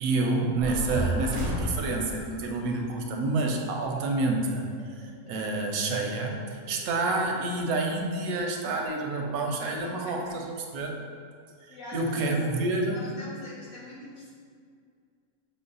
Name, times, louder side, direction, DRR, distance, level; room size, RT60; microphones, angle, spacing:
voice 1, 0.0-4.7 5.3-6.4 6.7-10.4 10.7-11.0 11.7-13.0, right 2 dB, 85° right, 2 dB, 1.1 m, -28 dB
sound 1, 0.6-5.9 6.1-6.2 6.5-6.6 6.8-6.9 7.2-7.3 7.5-7.6 7.9-8.0 8.3-8.4 8.8-8.9 9.3-9.4 9.7-9.8 10.2-10.3 10.7-10.8, left 1 dB, 40° left, 0.6 m, -53 dB
sound 2, 0.6-2.3, right 2 dB, 55° right, 0.5 m, -30 dB
voice 2, 5.2-5.6 6.6-6.8 9.6-10.1 11.7-12.5 12.9-14.3, left 2 dB, 70° left, -6 dB, 1.5 m, -44 dB
6.1 x 2.0 x 3.9 m, 2.1 s
omnidirectional pair, 1.5 m